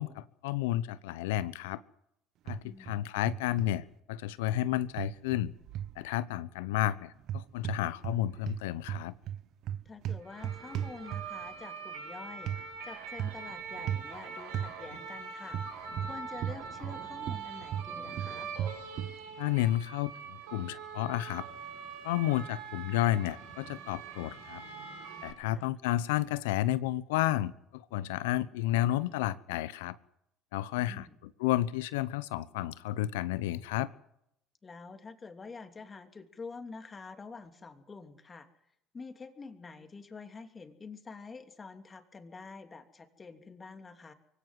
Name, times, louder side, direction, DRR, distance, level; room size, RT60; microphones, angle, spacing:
voice 1, 0.0-1.8 2.5-5.5 6.0-9.1 19.4-21.4 22.0-24.6 25.2-30.0 30.5-33.9, left 14 dB, 80° left, 17 dB, 1.0 m, -31 dB
sound 1, 2.5-3.0 3.3-3.7 5.0-6.0 7.2-8.2 8.5-11.5 12.5-12.6 13.2-13.5 13.9-14.1 14.5-14.7 15.5-17.0 17.3-19.2, right 10 dB, 60° right, 1.0 m, -36 dB
voice 2, 2.6-3.0 9.8-15.6 16.0-18.5 25.5-25.7 30.8-31.2 34.6-38.5 38.9-44.1, left 4 dB, 30° left, 7 dB, 3.1 m, -47 dB
sound 2, 10.2-25.3, right 5 dB, 80° right, 4.5 m, -43 dB
24.0 x 17.0 x 7.7 m, 0.76 s
hypercardioid pair, 70°, 0 cm